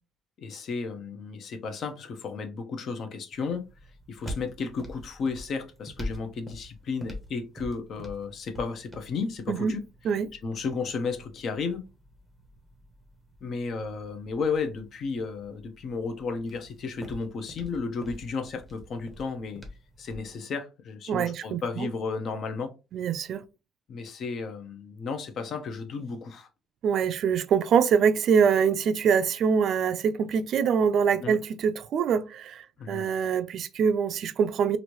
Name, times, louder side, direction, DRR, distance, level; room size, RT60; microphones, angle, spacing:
voice 1, 0.4-3.6 4.1-9.8 10.3-11.8 13.4-19.6 20.0-22.7 23.9-26.5 31.2-31.4 32.8-33.1, left 4 dB, 50° left, 0.7 m, -33 dB
sound 1, 3.3-20.4, equal, 5° left, 0.8 m, -45 dB
voice 2, 21.1-21.9 22.9-23.4 26.8-34.8, right 7 dB, 55° right, 0.3 m, -24 dB
3.0 x 2.6 x 3.0 m
cardioid pair, 135°, 0 cm